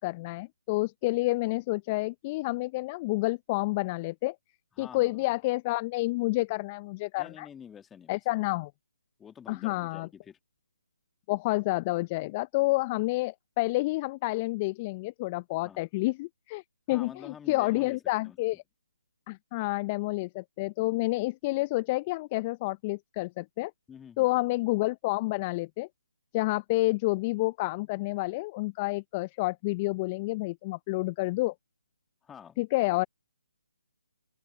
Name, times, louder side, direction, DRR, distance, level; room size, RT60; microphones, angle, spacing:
voice 1, 0.0-4.4 4.8-7.5 8.1-8.7 9.5-10.1 11.3-16.6 16.9-18.6 19.3-23.7 24.2-25.9 26.3-31.5 32.6-33.1, left 21 dB, 25° left, 0.7 m, -29 dB
voice 2, 4.7-5.3 7.2-8.4 9.2-10.4 15.6-15.8 16.9-18.6 23.9-24.3 32.2-32.6, left 8 dB, 10° left, 2.6 m, -48 dB
open air
figure-of-eight pair, 145°, 0 cm